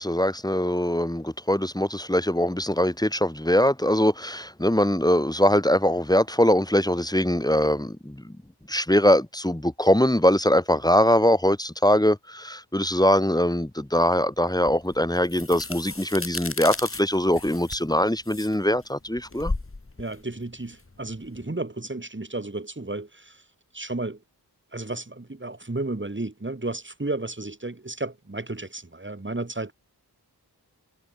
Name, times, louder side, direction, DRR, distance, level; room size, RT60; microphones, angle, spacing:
voice 1, 0.0-8.2 8.7-19.5, left 1 dB, 10° left, 1.4 m, -22 dB
sound 1, 14.7-21.4, left 3 dB, 30° left, 1.6 m, -36 dB
voice 2, 20.0-23.4 23.7-24.2 24.7-29.7, right 2 dB, 30° right, 2.0 m, -33 dB
wide cardioid pair, 55°, 40 cm